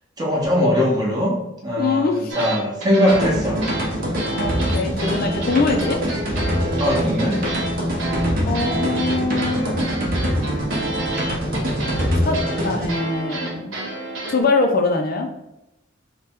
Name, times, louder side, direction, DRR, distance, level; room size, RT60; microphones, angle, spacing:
voice 1, 0.2-3.6 6.8-7.4, equal, 20° right, -2 dB, 0.8 m, -20 dB
voice 2, 1.8-2.3 4.4-6.0 8.4-9.7 12.2-13.8 14.3-15.3, left 3 dB, 50° left, 4 dB, 0.4 m, -23 dB
sound 1, 2.3-14.4, right 2 dB, 85° right, 1.0 m, -30 dB
sound 2, 3.1-12.9, equal, 50° right, 0.8 m, -24 dB
3.3 x 2.2 x 4.3 m, 0.90 s
head